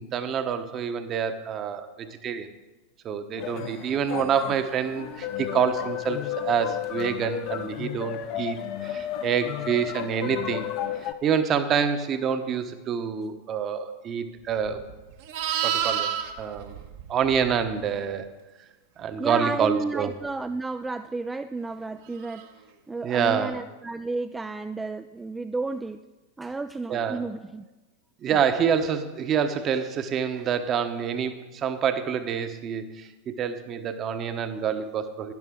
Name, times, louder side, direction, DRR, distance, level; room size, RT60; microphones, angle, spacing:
voice 1, 0.0-2.5 3.0-10.7 11.0-14.8 15.6-16.1 16.4-16.8 17.1-18.3 19.0-20.1 23.0-23.6 26.9-27.2 28.2-35.3, right 7 dB, 35° right, 9 dB, 1.0 m, -27 dB
sound 1, 3.4-11.1, left 11 dB, 45° left, 0.8 m, -33 dB
Livestock farm animals working animals, 14.6-17.9 22.2-22.5, right 10 dB, 60° right, 1.1 m, -30 dB
voice 2, 19.2-22.5 22.9-26.0 26.4-27.6, right 3 dB, 10° right, 9 dB, 0.3 m, -32 dB
12.0 x 10.5 x 3.8 m, 1.2 s
figure-of-eight pair, 90°, 0 cm